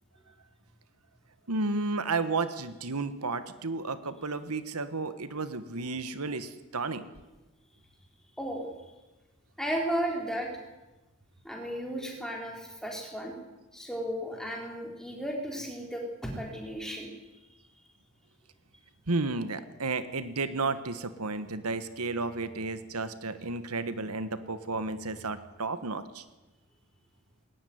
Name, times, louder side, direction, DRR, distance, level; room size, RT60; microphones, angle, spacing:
voice 1, 1.5-7.1 19.1-26.2, right 3 dB, 85° right, 12 dB, 1.5 m, -32 dB
voice 2, 8.4-8.9 9.6-10.5 11.4-13.3 13.7-17.1, equal, ahead, 0 dB, 4.4 m, -34 dB
20.5 x 18.5 x 9.6 m, 1.1 s
head